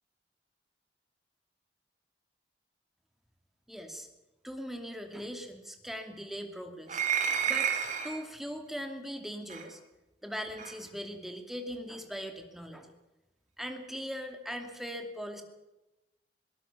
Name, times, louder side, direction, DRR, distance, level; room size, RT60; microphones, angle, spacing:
voice 1, 3.7-4.1 4.4-7.0 7.5-7.7 8.0-9.8 10.2-12.9 13.6-15.4, equal, ahead, 5 dB, 2.6 m, -40 dB
sound 1, 6.9-8.2 9.5-9.6 10.6-10.7, right 7 dB, 45° right, 3.6 m, -30 dB
22.0 x 18.5 x 7.1 m, 0.99 s
head